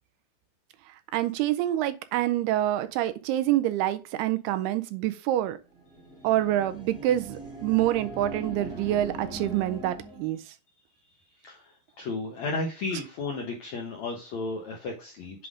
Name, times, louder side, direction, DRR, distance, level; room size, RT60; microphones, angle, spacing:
voice 1, 1.1-5.6 6.2-10.4, right 13 dB, 80° right, 2.5 m, -26 dB
sound 1, 5.7-10.4, right 2 dB, 5° right, 0.7 m, -41 dB
voice 2, 11.4-15.5, left 3 dB, 70° left, 1.7 m, -34 dB
7.9 x 3.8 x 4.9 m
omnidirectional pair, 4.8 m